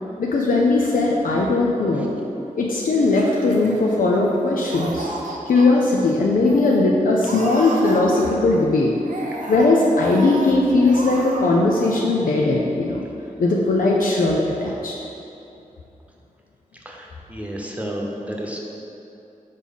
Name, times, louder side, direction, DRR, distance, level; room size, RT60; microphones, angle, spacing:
voice 1, 0.2-2.1 2.6-5.1 5.5-8.9 9.5-13.0 13.4-14.9, left 2 dB, 80° left, -3 dB, 0.6 m, -19 dB
Laughter, 3.0-4.4 4.7-5.7 6.1-6.2 6.4-6.8 7.2-8.6 9.0-10.5 10.8-11.4 11.7-12.0, right 2 dB, 70° right, 0.8 m, -33 dB
voice 2, 16.8-18.6, equal, 10° right, -1 dB, 1.0 m, -31 dB
4.8 x 4.1 x 5.4 m, 2.8 s
cardioid pair, 50°, 14 cm